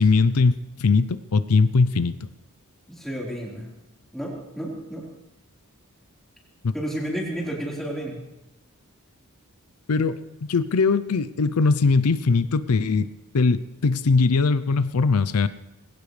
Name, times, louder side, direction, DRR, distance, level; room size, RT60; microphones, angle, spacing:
voice 1, 0.0-2.3 6.6-6.7 9.9-10.2 10.5-13.1 13.3-15.5, left 4 dB, 90° left, 14 dB, 0.6 m, -20 dB
voice 2, 2.9-3.7 4.1-5.1 6.7-8.2, right 1 dB, ahead, -5 dB, 4.2 m, -31 dB
20.5 x 17.5 x 3.3 m, 0.90 s
head